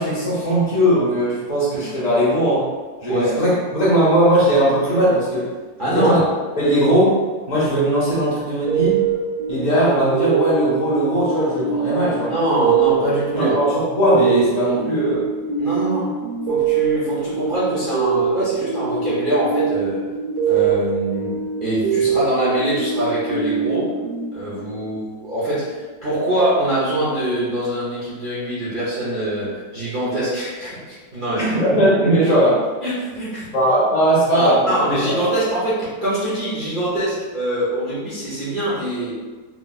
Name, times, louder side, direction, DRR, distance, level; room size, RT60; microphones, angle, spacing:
voice 1, 0.0-2.6 3.0-5.5 5.8-6.2 6.6-7.2 7.5-9.0 9.5-12.3 13.3-15.3 31.4-32.6 33.5-34.6 34.9-35.2, right 1 dB, 80° left, -8 dB, 0.3 m, -18 dB
voice 2, 3.1-3.4 5.8-6.2 12.3-13.5 15.6-16.1 16.5-20.0 20.5-23.9 24.3-31.5 32.8-33.5 34.3-39.2, right 1 dB, 85° right, -11 dB, 0.4 m, -23 dB
sound 1, 8.7-25.0, right 6 dB, 70° right, 1.0 m, -23 dB
3.1 x 2.9 x 2.3 m, 1.4 s
omnidirectional pair, 2.1 m